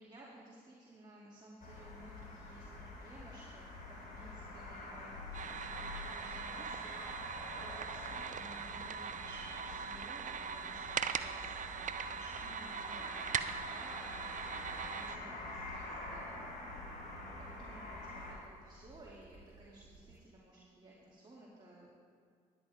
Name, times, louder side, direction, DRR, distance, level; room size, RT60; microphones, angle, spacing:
voice 1, 0.0-16.7 16.9-22.1, right 1 dB, 25° right, -6 dB, 2.4 m, -56 dB
sound 1, 1.6-18.3, left 2 dB, 55° left, 2.9 m, -47 dB
sound 2, 5.3-15.2, right 7 dB, 50° right, 0.5 m, -41 dB
sound 3, 14.1-20.3, right 2 dB, 65° right, 2.1 m, -60 dB
11.0 x 10.0 x 4.3 m, 2.1 s
supercardioid pair, 55°, 17 cm